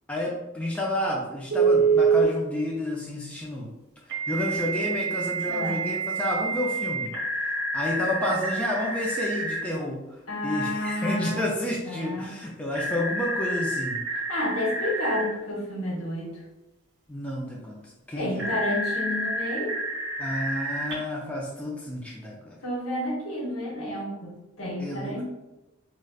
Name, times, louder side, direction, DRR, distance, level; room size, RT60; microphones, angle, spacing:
voice 1, 0.1-3.7 4.1-14.0 17.1-18.6 20.2-22.6 24.8-25.2, left 1 dB, 5° left, -3 dB, 0.3 m, -30 dB
Telephone, 1.5-2.3 4.1-9.6 12.7-15.3 18.4-20.9, right 4 dB, 55° right, 0.8 m, -27 dB
voice 2, 5.4-5.9 10.3-11.4 11.8-12.3 14.1-16.3 18.2-19.7 22.6-25.2, left 1 dB, 65° left, -3 dB, 0.9 m, -30 dB
4.7 x 2.1 x 2.3 m, 1.0 s
head